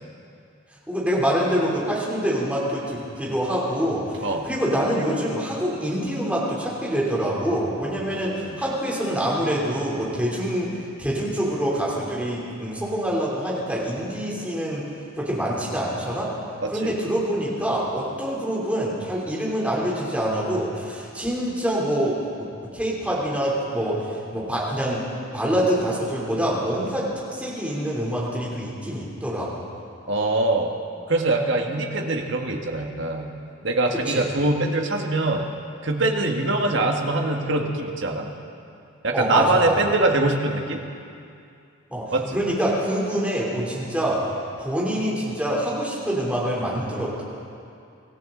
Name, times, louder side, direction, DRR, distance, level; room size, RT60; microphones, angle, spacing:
voice 1, 0.9-10.7 11.0-14.8 15.2-16.3 16.7-22.5 22.7-25.0 25.3-27.1 27.3-29.7 34.1-34.2 39.1-39.7 41.9-44.2 44.6-47.2, equal, 5° right, -5 dB, 3.2 m, -25 dB
voice 2, 16.6-16.9 30.1-30.7 31.1-33.3 33.6-35.5 35.8-38.3 39.0-40.8 42.1-42.4, right 2 dB, 55° right, 2 dB, 1.5 m, -23 dB
25.0 x 14.5 x 3.9 m, 2.5 s
head